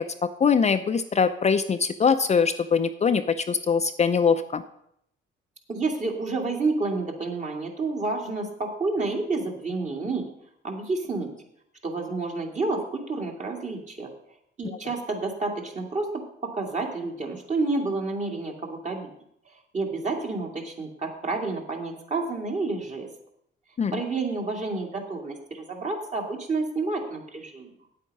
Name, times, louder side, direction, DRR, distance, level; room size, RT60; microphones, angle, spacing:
voice 1, 0.2-4.6 23.8-23.9, left 6 dB, 35° left, 9 dB, 0.5 m, -22 dB
voice 2, 5.7-10.3 10.6-11.3 11.8-14.1 14.6-19.1 19.5-23.1 23.9-27.7, right 3 dB, 35° right, 1 dB, 2.2 m, -29 dB
8.9 x 8.4 x 5.4 m, 0.73 s
cardioid pair, 90°, 20 cm